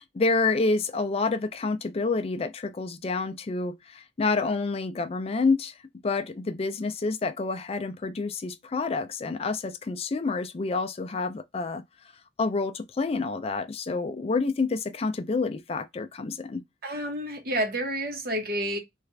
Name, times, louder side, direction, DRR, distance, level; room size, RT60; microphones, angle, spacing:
voice 1, 0.2-5.8 6.0-11.8 12.4-16.6, left 3 dB, 35° left, 0.4 m, -28 dB
voice 2, 16.8-18.8, right 1 dB, 55° right, 1.1 m, -29 dB
3.2 x 2.4 x 3.3 m
head